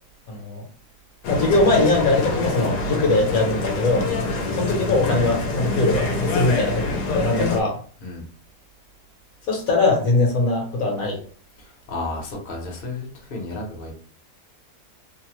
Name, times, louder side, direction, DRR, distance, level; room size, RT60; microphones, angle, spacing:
voice 1, 0.3-0.6 1.3-4.1 4.5-7.8 9.5-11.2, left 2 dB, 65° left, 0 dB, 1.2 m, -21 dB
sound 1, 1.2-7.6, left 3 dB, 85° left, 1.2 m, -25 dB
voice 2, 4.2-4.7 8.0-8.2 11.6-13.9, left 2 dB, 45° left, -1 dB, 0.8 m, -33 dB
3.0 x 2.0 x 2.9 m, 0.42 s
omnidirectional pair, 1.7 m